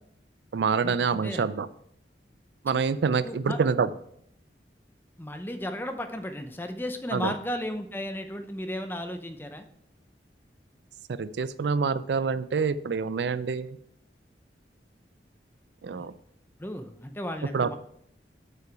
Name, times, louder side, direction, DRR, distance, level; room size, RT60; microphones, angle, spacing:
voice 1, 0.5-1.7 2.6-3.9 7.1-7.3 11.2-13.8 15.8-16.1 17.5-17.7, right 5 dB, 75° right, 15 dB, 0.4 m, -26 dB
voice 2, 3.2-3.6 5.2-9.6 16.0-16.1 16.6-17.8, left 1 dB, 10° left, 7 dB, 0.6 m, -34 dB
7.8 x 5.8 x 4.6 m, 0.70 s
head